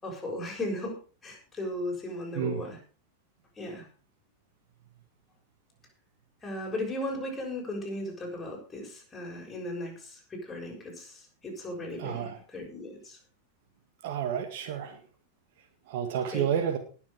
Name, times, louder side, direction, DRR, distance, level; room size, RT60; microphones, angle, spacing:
voice 1, 0.0-2.8 3.6-3.8 6.4-13.2 16.3-16.4, left 1 dB, 15° left, 0 dB, 6.8 m, -36 dB
voice 2, 12.0-12.4 14.0-15.0 15.9-16.8, right 8 dB, 50° right, 6 dB, 1.9 m, -30 dB
20.0 x 7.2 x 5.0 m, 0.38 s
figure-of-eight pair, 90°, 0 cm